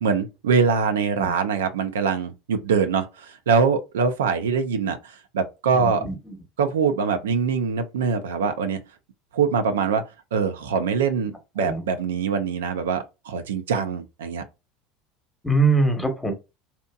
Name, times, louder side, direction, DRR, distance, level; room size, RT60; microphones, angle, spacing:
voice 1, 0.0-6.0 6.6-8.8 9.3-10.0 10.3-14.4, right 5 dB, 90° right, 0.4 m, -23 dB
voice 2, 5.7-6.4 11.6-11.9 15.4-16.3, right 3 dB, 5° left, 0.9 m, -23 dB
2.7 x 2.5 x 2.2 m
hypercardioid pair, 90°, 0 cm